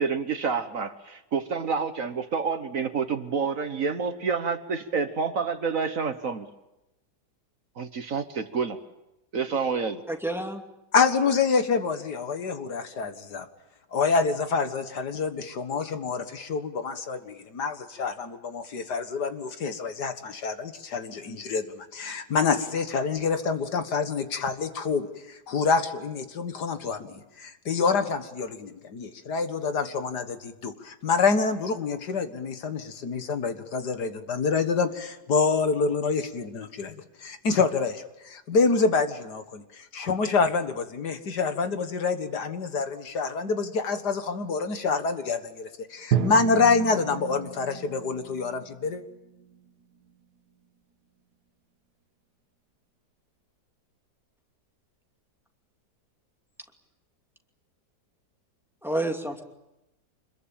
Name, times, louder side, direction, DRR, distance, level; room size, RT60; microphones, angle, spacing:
voice 1, 0.0-6.5 7.8-8.8 9.3-10.0, right 5 dB, 55° right, 9 dB, 1.5 m, -28 dB
voice 2, 10.1-10.6 58.8-59.4, right 1 dB, ahead, 3 dB, 2.4 m, -29 dB
voice 3, 10.9-13.5 13.9-36.9 37.2-49.0, left 4 dB, 70° left, 8 dB, 2.1 m, -27 dB
Drum, 46.1-50.1, right 8 dB, 70° right, 1.9 m, -32 dB
26.5 x 22.0 x 8.8 m, 0.92 s
omnidirectional pair, 1.8 m